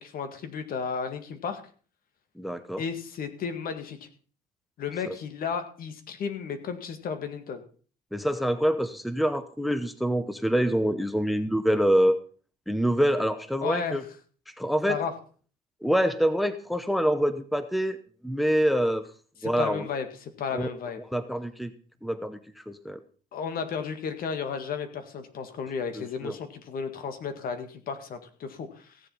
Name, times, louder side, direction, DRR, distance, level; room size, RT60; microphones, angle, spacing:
voice 1, 0.0-1.6 2.8-4.1 4.8-7.6 13.6-14.0 14.9-15.1 19.4-21.0 23.3-29.0, left 6 dB, 60° left, 9 dB, 1.9 m, -33 dB
voice 2, 2.4-2.8 8.1-12.2 12.7-14.0 14.6-15.0 15.8-18.0 18.2-19.1 19.4-19.9 20.5-20.7 21.1-21.7 22.0-22.4 22.7-23.0 26.0-26.3, equal, ahead, 12 dB, 0.9 m, -25 dB
16.0 x 7.5 x 5.5 m, 0.42 s
cardioid pair, 110°, 17 cm